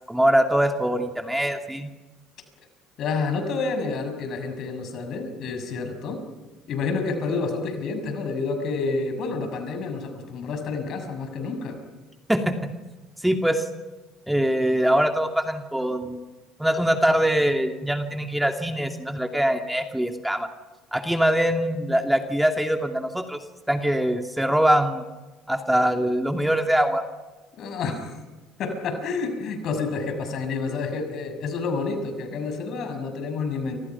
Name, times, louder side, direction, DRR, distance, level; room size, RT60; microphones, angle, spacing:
voice 1, 0.1-1.9 12.3-12.7 13.2-13.7 14.3-16.2 16.6-20.5 20.9-23.4 23.7-25.0 25.5-27.0, right 1 dB, 5° right, 5 dB, 2.5 m, -23 dB
voice 2, 3.0-6.2 6.7-11.8 27.6-28.2 28.6-33.8, left 4 dB, 55° left, 6 dB, 6.5 m, -29 dB
30.0 x 26.5 x 5.9 m, 1.2 s
hypercardioid pair, 60°, 0 cm